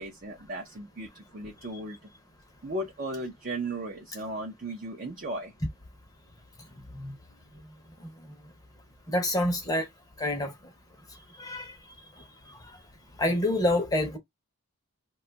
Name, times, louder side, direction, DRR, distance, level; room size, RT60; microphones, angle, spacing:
voice 1, 0.0-2.0 2.6-5.5, right 1 dB, 40° right, 0.6 m, -36 dB
voice 2, 6.8-7.1 9.1-9.9 10.2-10.5 11.4-11.7 13.2-14.2, left 1 dB, 15° left, 0.7 m, -27 dB
2.6 x 2.3 x 3.8 m
head